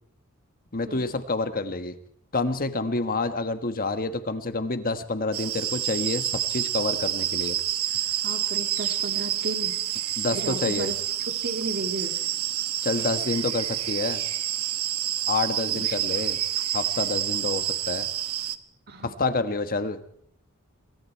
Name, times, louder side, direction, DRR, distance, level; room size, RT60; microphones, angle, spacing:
voice 1, 0.7-1.9 2.3-7.6 10.2-10.9 12.8-14.2 15.3-16.4 16.7-18.1 19.0-20.0, left 3 dB, 45° left, 10 dB, 1.4 m, -28 dB
sound 1, 5.3-18.6, right 12 dB, 85° right, 1.1 m, -28 dB
voice 2, 8.2-10.0 10.3-12.1 15.7-16.0 18.9-19.1, right 1 dB, 50° right, 6 dB, 2.0 m, -34 dB
26.0 x 23.0 x 4.6 m, 0.69 s
head